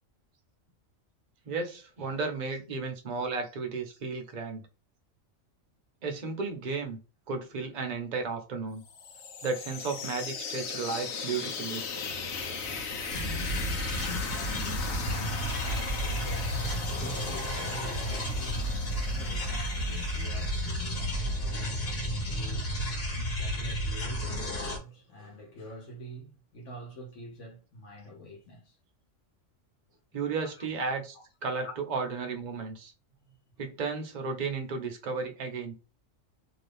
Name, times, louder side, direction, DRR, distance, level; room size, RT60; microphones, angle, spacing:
voice 1, 1.5-4.6 6.0-7.0 7.3-8.8 9.4-11.8 30.1-31.1 31.4-32.9 33.6-35.7, right 4 dB, 45° right, 0.6 m, -33 dB
sound 1, 8.8-20.5, left 5 dB, 90° left, 1.1 m, -38 dB
sound 2, 12.0-12.8 13.3-14.1 14.6-15.4 15.9-16.6 17.1-17.9 18.4-19.2 19.7-20.5 21.0-21.8 22.3-23.0, left 1 dB, 10° right, 0.8 m, -48 dB
sound 3, 13.1-24.8, equal, 50° left, 1.2 m, -32 dB
voice 2, 13.8-28.8 29.9-30.0 30.4-30.7 31.1-31.3 31.6-31.8 33.2-33.4, right 1 dB, 65° left, 1.2 m, -46 dB
2.8 x 2.4 x 3.2 m
omnidirectional pair, 1.4 m